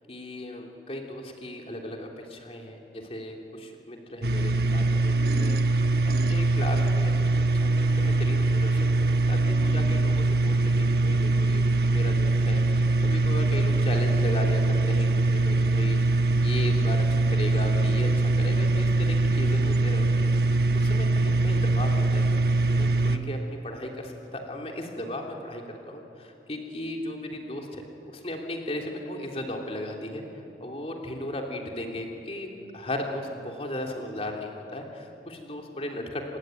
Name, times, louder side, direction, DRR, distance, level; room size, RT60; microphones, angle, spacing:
voice 1, 0.1-16.0 16.4-22.2 22.7-30.2 30.6-36.4, left 1 dB, 35° left, 1 dB, 3.2 m, -36 dB
sound 1, 4.2-23.2, right 2 dB, 60° right, 1.2 m, -23 dB
26.5 x 20.5 x 9.3 m, 2.6 s
head